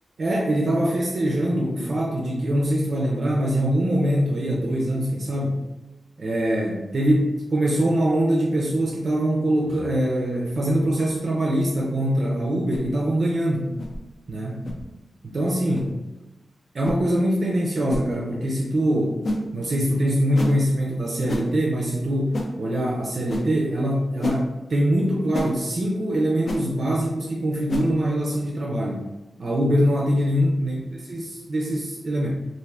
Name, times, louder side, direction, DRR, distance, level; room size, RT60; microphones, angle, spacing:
voice 1, 0.2-5.6 6.2-13.7 14.3-14.7 15.2-15.9 16.7-19.2 19.5-29.1 29.4-30.8 31.1-32.3, equal, 50° right, -3 dB, 0.4 m, -23 dB
sound 1, 12.7-12.9 13.8-14.0 14.6-14.8 15.7-15.9 16.8-17.0 17.9-18.0 19.2-19.4 20.3-20.6 21.3-21.5 22.3-22.5 23.3-23.5 24.2-24.4 25.3-25.5 26.4-26.6 27.7-27.9, left 1 dB, 50° left, 0.3 m, -28 dB
2.4 x 2.4 x 3.2 m, 1.0 s
wide cardioid pair, 150°, 0 cm